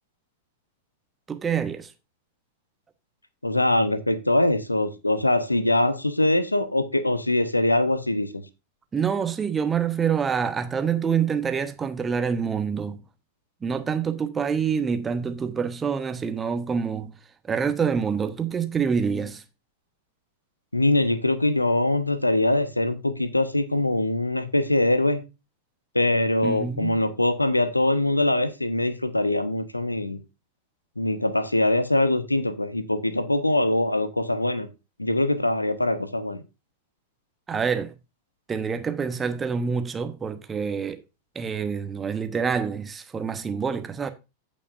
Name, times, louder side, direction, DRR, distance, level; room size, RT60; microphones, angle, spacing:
voice 1, 1.3-1.9 8.9-13.0 13.6-17.2 17.4-19.4 26.4-27.0 37.5-37.9 38.5-41.0 41.3-44.1, right 6 dB, 20° right, 1.0 m, -26 dB
voice 2, 3.4-8.4 20.7-25.2 25.9-30.2 31.0-34.7 35.0-36.4, left 1 dB, 85° left, 0.9 m, -23 dB
15.0 x 5.4 x 2.5 m
figure-of-eight pair, 90°, 0 cm